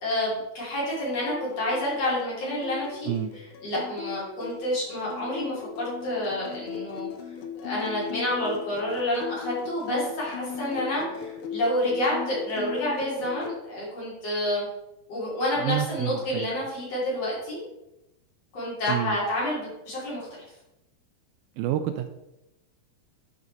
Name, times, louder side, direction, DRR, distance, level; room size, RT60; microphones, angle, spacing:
voice 1, 0.0-3.1 3.6-7.1 7.6-14.6 15.1-17.6 18.5-20.3, left 1 dB, 45° left, -6 dB, 3.9 m, -29 dB
sound 1, 1.1-13.6, left 7 dB, 75° left, 1.8 m, -38 dB
voice 2, 15.6-16.5 18.9-19.2 21.6-22.1, right 12 dB, 80° right, 8 dB, 2.3 m, -28 dB
10.5 x 5.4 x 4.1 m, 0.92 s
omnidirectional pair, 4.4 m